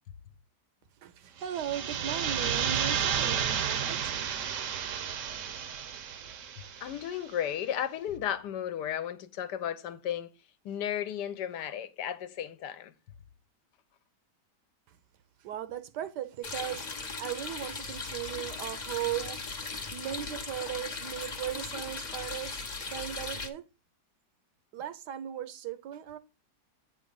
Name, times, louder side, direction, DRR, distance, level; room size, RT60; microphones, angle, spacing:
voice 1, 1.0-4.3 15.4-16.8 17.2-19.4 19.9-23.6 24.7-26.2, right 11 dB, 75° right, 1.2 m, -37 dB
sound 1, 1.4-7.1, right 8 dB, 60° right, 0.9 m, -32 dB
voice 2, 6.8-10.3 10.6-12.9, left 10 dB, 70° left, 1.3 m, -34 dB
sound 2, 16.4-23.5, left 4 dB, 35° left, 0.7 m, -38 dB
8.7 x 3.9 x 5.2 m
omnidirectional pair, 1.9 m